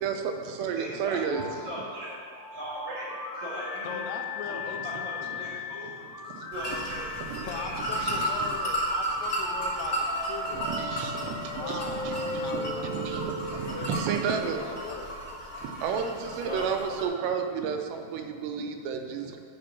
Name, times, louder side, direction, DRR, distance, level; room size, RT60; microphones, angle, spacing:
voice 1, 0.0-1.5 6.3-8.5 10.5-14.8 15.6-19.4, right 6 dB, 85° right, 5 dB, 2.8 m, -32 dB
voice 2, 0.8-1.2 1.6-2.1 2.5-4.0 4.5-5.9 6.5-7.8 16.4-16.8, equal, 50° right, -9 dB, 3.7 m, -38 dB
sound 1, 1.3-15.1, left 3 dB, 55° left, 0.5 m, -38 dB
voice 3, 3.8-5.4 7.4-10.7 11.2-13.3 13.5-14.0 14.6-15.1, left 5 dB, 85° left, 2 dB, 2.8 m, -39 dB
sound 2, 6.5-17.0, equal, 25° left, 1.5 m, -34 dB
10.5 x 4.4 x 6.9 m, 2.3 s
omnidirectional pair, 4.8 m